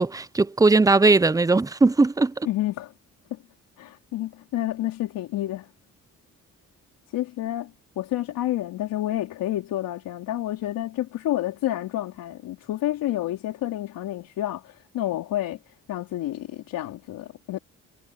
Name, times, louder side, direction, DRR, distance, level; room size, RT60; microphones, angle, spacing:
voice 1, 0.0-2.5, right 3 dB, 10° right, 0.5 m, -19 dB
voice 2, 2.4-2.9 3.3-3.4 3.8-5.7 7.1-17.6, left 14 dB, 85° left, 3.3 m, -29 dB
cardioid pair, 85°, 33 cm